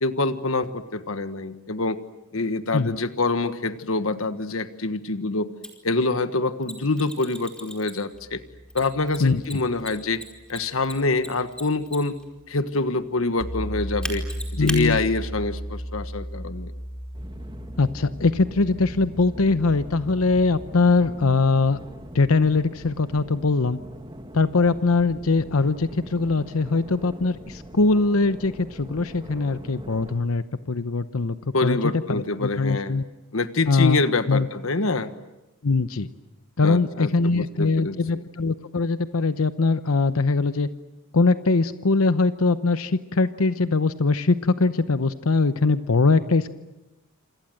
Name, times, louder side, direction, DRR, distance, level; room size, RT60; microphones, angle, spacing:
voice 1, 0.0-2.0 2.3-5.5 5.8-8.4 8.7-10.2 10.5-12.2 12.5-14.2 14.5-16.7 31.5-33.0 33.3-35.1 36.6-38.0, left 3 dB, 70° left, 11 dB, 1.4 m, -25 dB
Mechanisms, 5.6-5.7 6.6-8.2 8.7-12.2 14.0-14.8, left 1 dB, 5° left, 4.8 m, -36 dB
sound 1, 8.1-11.4 13.4-22.9, equal, 45° left, 2.0 m, -37 dB
voice 2, 14.6-15.0 17.8-21.8 22.1-23.8 24.3-31.4 31.6-31.8 32.1-33.0 33.7-34.0 34.3-34.5 35.6-36.1 36.6-40.7 41.1-46.5, left 3 dB, 90° left, 12 dB, 0.9 m, -22 dB
sound 2, 17.1-30.1, right 1 dB, 20° right, 2.1 m, -42 dB
27.5 x 27.0 x 7.9 m, 1.0 s
head